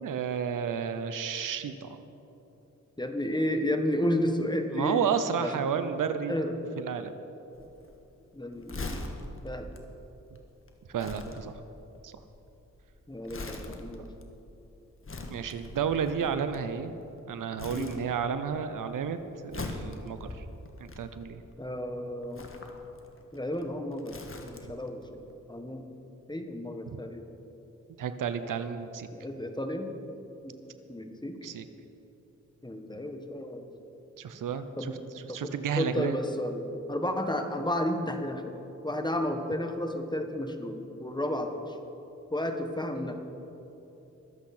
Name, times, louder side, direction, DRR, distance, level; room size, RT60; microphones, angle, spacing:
voice 1, 0.0-2.0 4.7-6.4 6.8-7.1 10.9-11.6 12.0-12.1 15.3-16.9 17.3-19.2 19.4-20.5 20.8-21.4 26.9-27.0 28.0-29.1 31.4-31.7 34.2-34.9 35.3-36.2, right 7 dB, 85° right, 10 dB, 0.7 m, -31 dB
voice 2, 3.0-5.1 5.4-5.7 6.3-6.8 8.3-9.0 9.4-9.7 13.1-14.1 17.7-18.0 21.6-22.5 23.3-24.2 24.4-25.9 26.3-27.3 29.1-30.0 30.4-30.5 30.9-31.4 32.6-33.7 34.8-34.9 35.3-35.4 35.8-38.6 38.8-41.8 42.3-43.2, left 1 dB, 15° left, 5 dB, 1.5 m, -32 dB
Crumpling crinkling, 7.5-17.2 17.6-18.5 18.8-21.5 22.2-24.9 25.2-25.3, left 2 dB, 45° left, 1.5 m, -42 dB
22.5 x 8.2 x 4.4 m, 3.0 s
cardioid pair, 55°, 31 cm